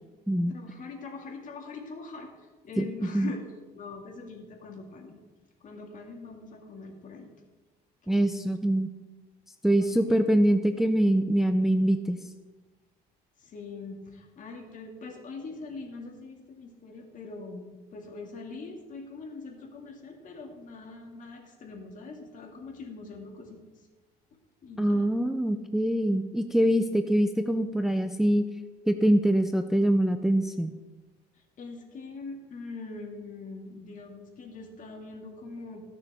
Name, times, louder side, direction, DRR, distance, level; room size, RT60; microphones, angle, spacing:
voice 1, 0.5-3.4 3.7-5.2 5.6-7.3 8.0-8.4 9.8-10.2 13.4-23.9 24.6-25.1 31.4-35.8, left 3 dB, 50° left, 2 dB, 2.3 m, -43 dB
voice 2, 8.1-8.9 9.6-12.2 24.8-28.4 28.9-30.7, right 1 dB, ahead, 7 dB, 0.5 m, -24 dB
19.5 x 6.7 x 3.6 m, 1.2 s
cardioid pair, 110°, 17 cm